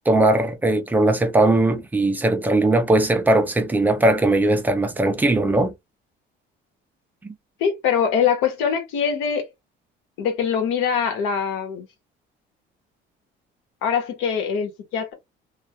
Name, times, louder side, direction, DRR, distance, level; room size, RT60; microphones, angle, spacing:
voice 1, 0.1-5.7 7.2-7.3, right 2 dB, 10° right, 0.3 m, -19 dB
voice 2, 7.6-9.5 10.2-11.9 13.8-15.1, left 7 dB, 75° left, 0.9 m, -23 dB
2.2 x 2.1 x 2.7 m
cardioid pair, 175°, 20 cm